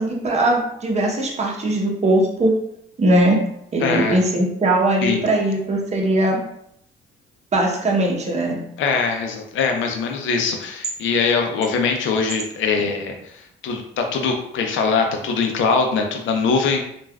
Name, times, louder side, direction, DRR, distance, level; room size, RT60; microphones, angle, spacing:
voice 1, 0.0-2.5 3.0-3.4 3.7-6.4 7.5-8.6, right 1 dB, 35° right, -1 dB, 0.8 m, -20 dB
voice 2, 3.8-4.2 5.0-5.2 8.8-16.9, left 5 dB, 75° left, 3 dB, 0.5 m, -22 dB
3.2 x 2.4 x 2.3 m, 0.73 s
cardioid pair, 90°, 20 cm